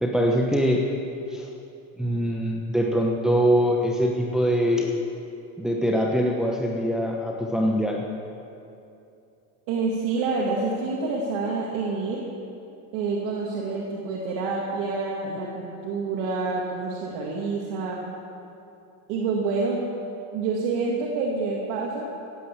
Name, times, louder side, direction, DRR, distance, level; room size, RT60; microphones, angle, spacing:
voice 1, 0.0-0.9 1.3-1.5 2.0-5.0 5.6-8.1, equal, ahead, -1 dB, 1.0 m, -23 dB
voice 2, 9.7-12.2 12.9-18.0 19.1-19.8 20.3-22.1, right 4 dB, 80° right, -3 dB, 2.3 m, -27 dB
16.0 x 9.3 x 7.4 m, 2.7 s
cardioid pair, 130°, 39 cm